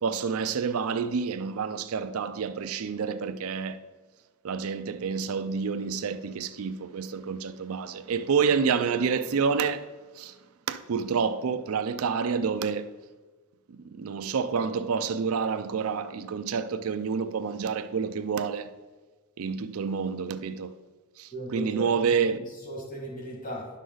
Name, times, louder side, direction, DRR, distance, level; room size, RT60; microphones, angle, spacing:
voice 1, 0.0-3.8 4.4-9.8 10.2-10.3 10.7-12.9 13.7-18.7 19.4-20.7 21.2-22.4, right 6 dB, 70° right, 0.4 m, -28 dB
voice 2, 21.3-23.7, equal, 40° left, 2.0 m, -38 dB
10.0 x 6.3 x 3.9 m
head